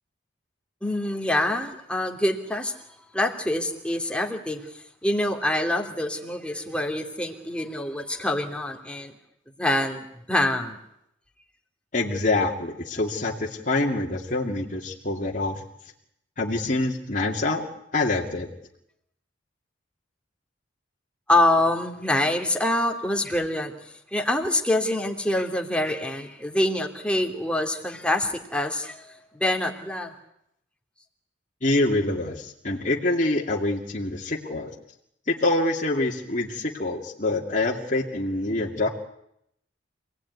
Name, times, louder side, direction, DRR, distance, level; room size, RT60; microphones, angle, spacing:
voice 1, 0.8-2.8 3.1-4.6 5.0-9.1 9.6-10.8 21.3-23.7 24.1-30.1, left 1 dB, 5° left, 2 dB, 2.7 m, -25 dB
voice 2, 11.9-15.6 16.4-17.6 17.9-18.5 31.6-34.7 35.3-38.9, left 2 dB, 40° left, -1 dB, 2.4 m, -25 dB
27.0 x 18.5 x 9.5 m, 0.76 s
head